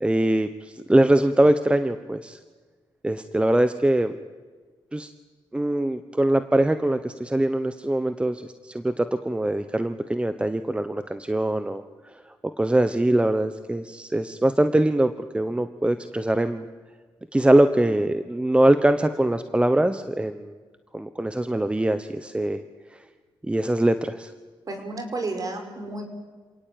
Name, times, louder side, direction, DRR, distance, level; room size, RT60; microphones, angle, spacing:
voice 1, 0.0-2.4 3.0-4.1 4.9-5.1 5.5-12.2 12.6-16.7 17.3-20.6 20.9-22.6 22.9-23.0 23.4-24.3, right 1 dB, 10° right, 10 dB, 1.0 m, -22 dB
voice 2, 24.7-26.0, right 2 dB, 40° right, 6 dB, 5.5 m, -31 dB
27.5 x 18.0 x 9.2 m, 1.5 s
cardioid pair, 95°, 9 cm